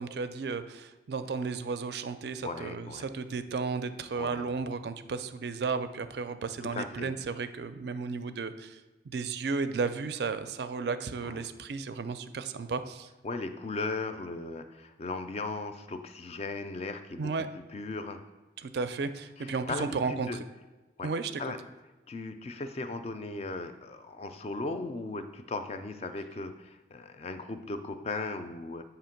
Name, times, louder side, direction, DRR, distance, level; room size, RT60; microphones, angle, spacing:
voice 1, 0.0-8.8 9.1-13.1 17.2-17.5 18.6-20.3 21.0-21.4, right 4 dB, 60° right, 11 dB, 0.4 m, -34 dB
voice 2, 2.4-3.1 4.1-4.5 6.7-7.1 11.2-11.5 13.2-18.2 19.4-20.4 21.0-21.1 21.4-21.6 22.1-28.8, left 3 dB, 35° left, 8 dB, 0.3 m, -37 dB
7.5 x 2.9 x 5.8 m, 1.1 s
head